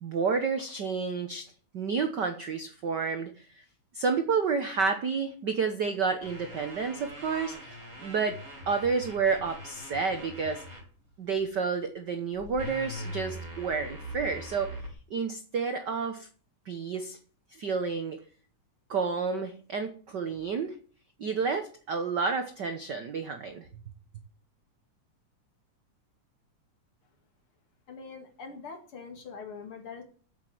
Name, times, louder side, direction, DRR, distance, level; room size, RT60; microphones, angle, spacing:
voice 1, 0.0-3.6 3.9-8.4 8.7-10.6 11.2-14.8 15.1-16.3 16.7-17.2 17.5-18.2 18.9-20.8 21.2-23.7, right 5 dB, 65° right, 1.0 m, -30 dB
sound 1, 6.2-10.8 11.4-11.6 12.3-14.9, equal, 30° right, 3.5 m, -42 dB
voice 2, 27.9-30.0, left 5 dB, 50° left, 2.8 m, -43 dB
8.2 x 8.1 x 9.0 m
omnidirectional pair, 3.4 m